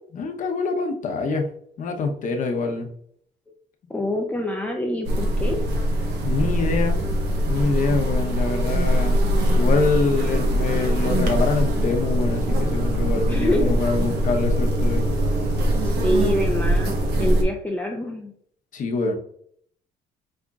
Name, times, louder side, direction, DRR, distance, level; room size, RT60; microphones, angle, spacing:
voice 1, 0.1-1.5 1.8-2.9 6.2-7.0 7.5-9.2 9.5-15.2 18.7-19.1, left 4 dB, 50° left, 3 dB, 0.9 m, -25 dB
voice 2, 3.9-5.6 13.3-13.8 15.7-18.3, left 1 dB, 10° left, 1 dB, 0.5 m, -26 dB
sound 1, 5.0-17.4, right 1 dB, 75° right, 1.1 m, -22 dB
5.4 x 3.5 x 2.4 m, 0.64 s
cardioid pair, 110°, 17 cm